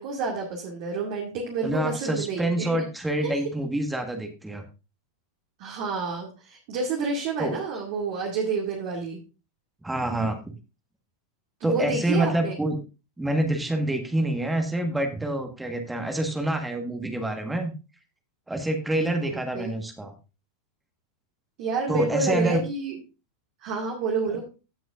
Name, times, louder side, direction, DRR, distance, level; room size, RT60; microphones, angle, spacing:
voice 1, 0.0-2.8 3.2-3.4 5.6-9.2 11.6-12.5 19.3-19.7 21.6-23.0 23.6-24.4, right 4 dB, 45° right, 0 dB, 2.3 m, -29 dB
voice 2, 1.6-4.6 7.4-7.6 9.8-10.5 11.6-12.8 13.2-17.7 18.5-20.1 21.9-22.6 24.3-24.4, right 1 dB, 5° right, 4 dB, 1.6 m, -27 dB
16.0 x 6.1 x 2.6 m, 0.30 s
figure-of-eight pair, 90°, 0 cm